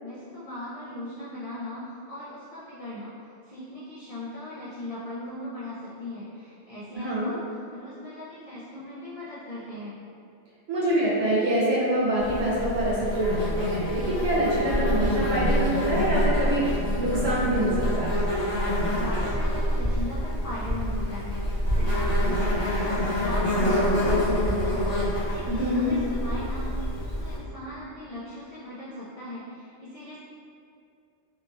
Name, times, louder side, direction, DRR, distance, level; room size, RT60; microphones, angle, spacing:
voice 1, 0.0-10.0 18.8-30.2, left 1 dB, 70° left, -9 dB, 0.3 m, -38 dB
voice 2, 6.9-7.3 10.7-18.2 25.5-25.9, right 1 dB, 65° right, -7 dB, 1.0 m, -25 dB
Insect, 12.2-27.4, equal, 35° left, 1.0 m, -26 dB
2.8 x 2.5 x 2.4 m, 2.4 s
omnidirectional pair, 1.2 m